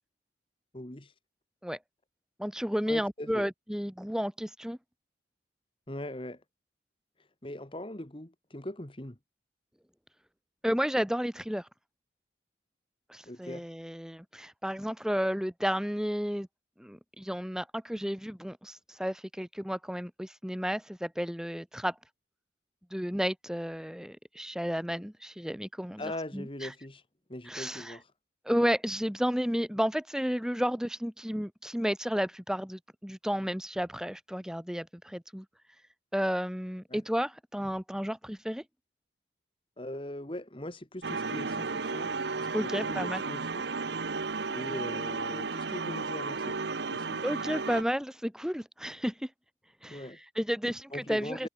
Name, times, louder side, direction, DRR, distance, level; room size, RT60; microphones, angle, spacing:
voice 1, 0.7-1.1 2.9-3.5 5.9-6.4 7.4-9.2 13.3-13.7 26.0-27.0 27.3-28.1 36.9-37.0 39.8-43.6 44.5-46.6 46.9-47.2 49.9-50.2 50.9-51.5, left 1 dB, 30° left, 1.7 m, -40 dB
voice 2, 2.4-4.8 10.6-11.7 13.1-16.5 16.8-22.0 22.9-26.0 26.3-26.7 27.5-28.0 28.5-35.5 36.1-38.6 42.5-43.2 47.2-49.3 49.8-50.0 50.4-51.5, equal, 5° right, 1.9 m, -32 dB
sound 1, 41.0-47.8, right 4 dB, 70° right, 1.0 m, -33 dB
head